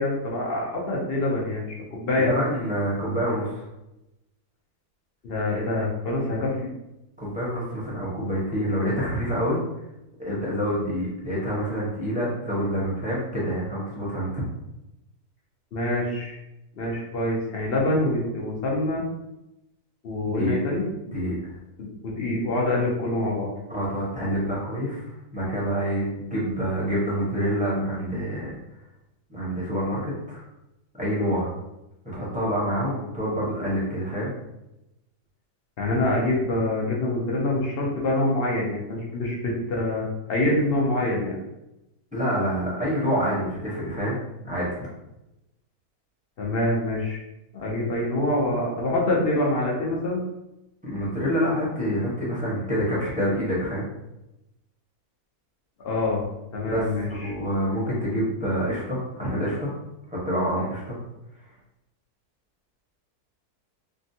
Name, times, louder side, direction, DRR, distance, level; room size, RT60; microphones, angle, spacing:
voice 1, 0.0-2.3 5.2-6.6 15.7-16.4 16.8-19.0 20.0-20.8 22.0-23.5 35.8-41.4 46.4-47.2 47.5-50.2 55.8-56.2 56.5-57.3, left 2 dB, 55° left, -3 dB, 0.6 m, -25 dB
voice 2, 2.2-3.6 7.2-9.6 10.2-14.4 20.2-20.6 21.0-21.5 23.7-28.6 29.3-30.4 31.0-31.5 32.0-34.3 42.1-44.2 44.4-44.9 50.8-53.9 56.6-56.9 57.2-59.7 60.1-61.0, equal, 10° right, -8 dB, 0.6 m, -27 dB
3.4 x 2.1 x 2.7 m, 0.91 s
omnidirectional pair, 1.6 m